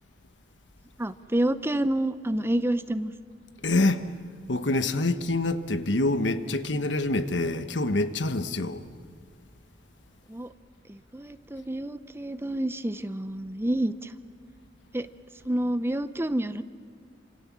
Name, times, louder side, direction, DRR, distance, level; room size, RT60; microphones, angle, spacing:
voice 1, 1.0-3.1 10.3-10.5 10.9-13.9 14.9-15.1 15.5-16.6, right 1 dB, 15° right, 0.6 m, -28 dB
voice 2, 3.6-4.1 4.5-8.8, left 2 dB, 75° left, 1.3 m, -26 dB
28.5 x 27.0 x 7.4 m
head